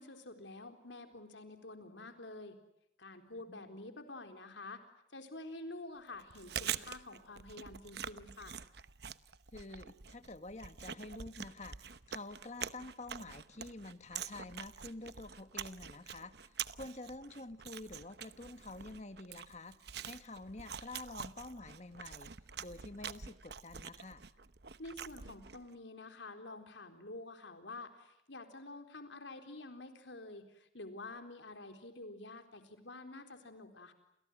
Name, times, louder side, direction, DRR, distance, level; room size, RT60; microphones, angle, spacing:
voice 1, 0.0-2.6 3.0-4.8 5.1-8.6 24.8-33.9, left 2 dB, 75° left, 7 dB, 4.0 m, -48 dB
Chewing mastication, 6.2-25.7, right 8 dB, 60° right, 1.0 m, -46 dB
voice 2, 9.5-22.3 22.6-24.2, left 2 dB, 40° left, 10 dB, 1.7 m, -48 dB
29.5 x 28.5 x 6.3 m, 0.83 s
head